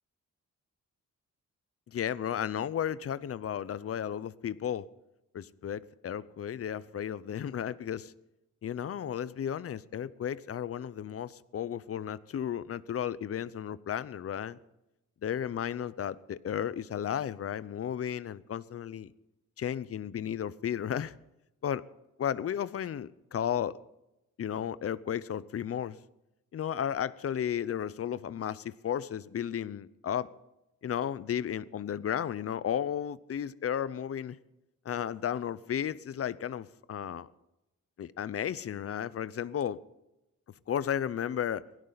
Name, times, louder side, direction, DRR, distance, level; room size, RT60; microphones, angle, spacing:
voice 1, 1.9-4.9 5.3-8.1 8.6-14.6 15.2-19.1 19.6-21.1 21.6-21.8 22.2-23.8 24.4-26.0 26.5-30.3 30.8-34.4 34.8-37.3 38.0-39.8 40.7-41.6, left 9 dB, 50° left, 0.7 m, -34 dB
20.0 x 16.5 x 4.0 m
wide cardioid pair, 145°, 30 cm